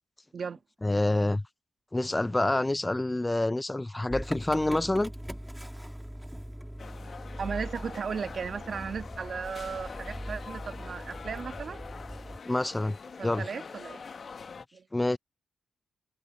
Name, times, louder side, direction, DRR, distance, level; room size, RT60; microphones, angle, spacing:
voice 1, 0.8-1.4 1.9-5.1 12.5-13.0 13.2-13.5 14.9-15.2, left 1 dB, 15° left, 0.4 m, -27 dB
Motor vehicle (road) / Engine starting, 4.1-12.4, equal, 5° right, 2.4 m, -41 dB
sound 1, 6.8-14.7, left 5 dB, 50° left, 1.1 m, -45 dB
voice 2, 7.4-11.9 13.2-14.0 14.7-14.8, right 6 dB, 55° right, 1.5 m, -36 dB
supercardioid pair, 55°, 0 cm